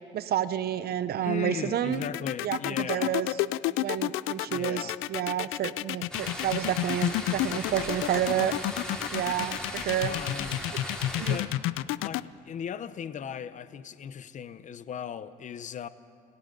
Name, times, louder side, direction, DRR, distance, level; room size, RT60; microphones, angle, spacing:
voice 1, 0.1-2.0 2.4-3.3 3.8-8.5 9.1-10.1 11.2-11.4, right 10 dB, 50° right, 0.8 m, -30 dB
voice 2, 1.2-3.2 4.5-5.0 10.1-10.6 11.2-11.6 12.0-15.9, left 8 dB, 40° left, 0.7 m, -37 dB
sound 1, 1.9-12.2, left 16 dB, 85° left, 0.5 m, -30 dB
sound 2, 6.1-11.4, equal, 5° left, 3.0 m, -38 dB
29.5 x 18.0 x 5.3 m
cardioid pair, 150°, 20 cm